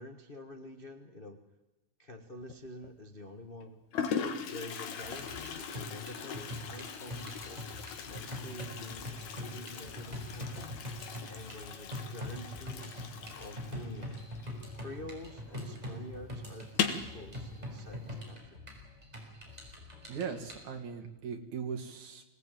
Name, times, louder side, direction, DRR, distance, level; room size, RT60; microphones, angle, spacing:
voice 1, 0.0-1.4 2.0-3.8 4.4-7.6 8.1-10.7 11.3-12.9 13.3-14.2 14.7-18.6, left 1 dB, 50° left, 5 dB, 0.6 m, -47 dB
Toilet flush, 2.4-2.9 3.6-3.7 3.9-15.2 15.5-15.6 15.9-16.0 16.6-17.1, left 7 dB, 70° left, 2.9 m, -39 dB
sound 1, 5.0-20.6, left 1 dB, 10° right, 6.1 m, -43 dB
voice 2, 20.1-22.2, right 6 dB, 70° right, 5 dB, 3.7 m, -39 dB
25.0 x 18.5 x 9.1 m, 1.0 s
omnidirectional pair, 3.5 m